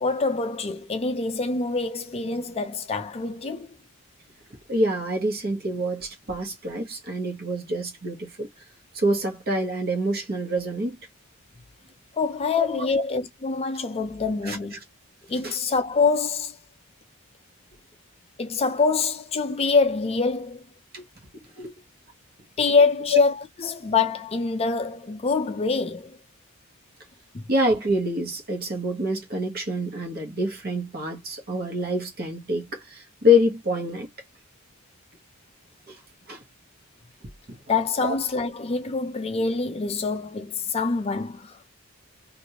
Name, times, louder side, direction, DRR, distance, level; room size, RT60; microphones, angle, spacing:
voice 1, 0.0-3.7 12.2-14.8 15.3-16.5 18.4-20.6 22.6-26.2 27.3-27.4 37.7-41.7, left 4 dB, 25° left, 0.4 m, -25 dB
voice 2, 4.7-8.5 8.9-11.0 12.6-12.9 14.4-14.6 15.4-15.5 20.9-21.0 21.6-21.7 27.5-34.1 35.9-36.0 36.3-36.4 37.5-37.6 38.0-38.1, left 1 dB, 45° right, 1.1 m, -26 dB
3.0 x 2.5 x 2.8 m
head